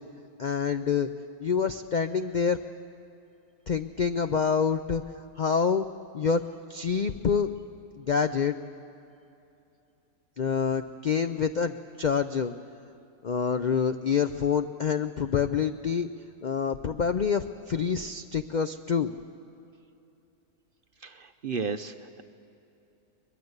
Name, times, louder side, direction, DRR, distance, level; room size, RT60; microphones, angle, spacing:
voice 1, 0.4-1.1 1.4-2.6 3.7-5.0 5.4-5.8 6.1-6.4 6.7-7.5 8.0-8.5 10.4-12.5 13.2-16.1 16.4-19.1, left 6 dB, 80° left, 9 dB, 0.4 m, -27 dB
voice 2, 21.0-22.2, right 5 dB, 50° right, 9 dB, 0.6 m, -34 dB
23.0 x 21.5 x 8.0 m, 2.8 s
omnidirectional pair, 1.6 m